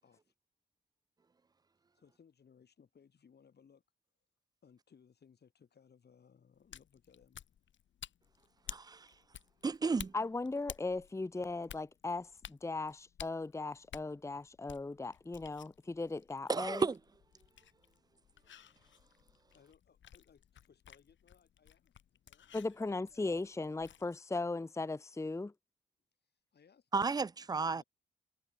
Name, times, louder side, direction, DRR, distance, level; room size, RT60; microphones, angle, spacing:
voice 1, 0.0-0.3 1.9-3.8 4.6-7.4 19.5-22.0 22.2-22.6 23.0-23.2 26.2-26.9 27.3-27.8, left 7 dB, 60° left, 7.1 m, -65 dB
sound 1, 6.5-24.2, left 9 dB, 80° left, 2.8 m, -54 dB
voice 2, 8.7-9.1 9.6-10.1 16.5-17.0 26.9-27.8, right 4 dB, 20° right, 0.4 m, -33 dB
voice 3, 10.1-16.8 22.5-25.5, left 3 dB, 15° left, 0.8 m, -38 dB
cardioid pair, 85°, 19 cm